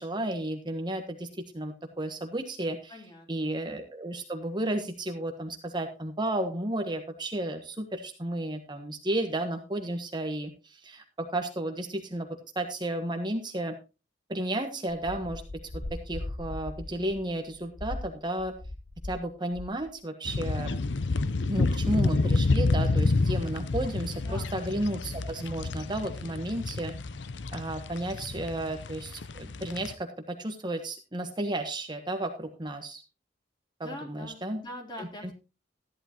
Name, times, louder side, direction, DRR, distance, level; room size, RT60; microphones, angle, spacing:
voice 1, 0.0-3.0 3.3-12.3 12.5-13.7 14.3-15.4 15.9-18.5 19.0-20.8 21.5-26.9 27.5-33.0 33.8-34.6 35.0-35.3, right 1 dB, 25° right, 5 dB, 1.2 m, -33 dB
voice 2, 2.9-3.5 24.2-24.8 26.0-26.4 33.8-35.3, left 1 dB, 25° left, 2 dB, 3.4 m, -44 dB
sound 1, 14.9-19.3 19.5-19.9, left 1 dB, 45° left, 0.9 m, -39 dB
sound 2, 20.3-29.9, left 3 dB, 85° left, 0.7 m, -29 dB
14.0 x 11.0 x 3.0 m, 0.30 s
head